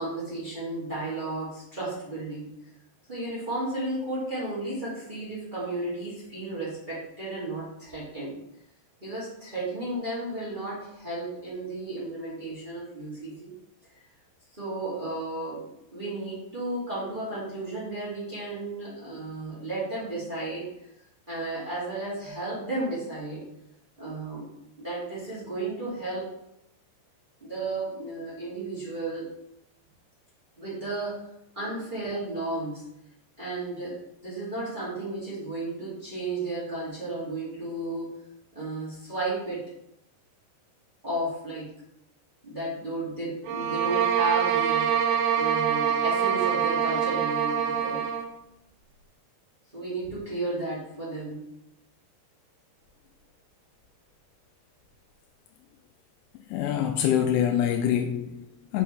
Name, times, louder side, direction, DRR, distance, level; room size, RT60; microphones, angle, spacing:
voice 1, 0.0-2.5 3.1-8.4 9.0-13.5 14.5-20.7 21.3-23.5 24.0-24.5 24.8-26.3 27.4-29.3 30.6-31.2 31.5-33.0 33.4-38.1 38.5-39.7 41.0-41.8 42.4-45.0 45.3-48.1 49.7-51.5, right 2 dB, 20° right, 1.5 m, -33 dB
sound 1, 43.4-48.3, right 8 dB, 90° right, 2.9 m, -25 dB
voice 2, 56.5-58.8, left 9 dB, 90° left, 2.7 m, -25 dB
6.5 x 6.1 x 3.3 m
omnidirectional pair, 4.8 m